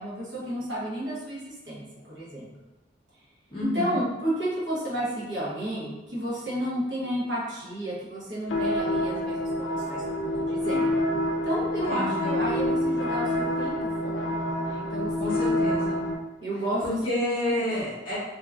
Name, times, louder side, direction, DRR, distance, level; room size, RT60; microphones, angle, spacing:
voice 1, 0.0-2.5 3.6-10.9 11.4-15.5 16.4-16.8 17.4-17.5, right 1 dB, 60° right, -8 dB, 1.0 m, -32 dB
voice 2, 3.5-3.9 11.9-12.3 15.2-16.0 16.8-18.2, left 1 dB, 25° left, -10 dB, 0.7 m, -29 dB
sound 1, 8.5-16.2, left 1 dB, 75° left, 0.3 m, -27 dB
2.8 x 2.3 x 2.4 m, 1.0 s
head